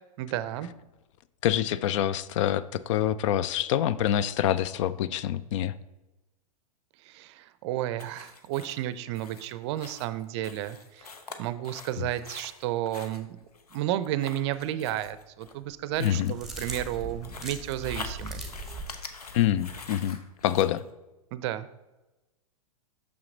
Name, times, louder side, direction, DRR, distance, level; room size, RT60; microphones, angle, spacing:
voice 1, 0.2-0.7 7.0-11.1 11.4-13.3 13.7-18.4 21.3-21.7, right 13 dB, 50° right, 14 dB, 0.5 m, -32 dB
voice 2, 1.4-5.7 16.0-16.3 19.3-20.8, left 11 dB, 55° left, 16 dB, 0.4 m, -26 dB
sound 1, 8.0-20.8, left 4 dB, 90° left, 0.8 m, -45 dB
sound 2, 16.0-18.9, right 2 dB, ahead, 1.2 m, -39 dB
6.4 x 5.8 x 3.9 m, 1.0 s
hypercardioid pair, 105°, 19 cm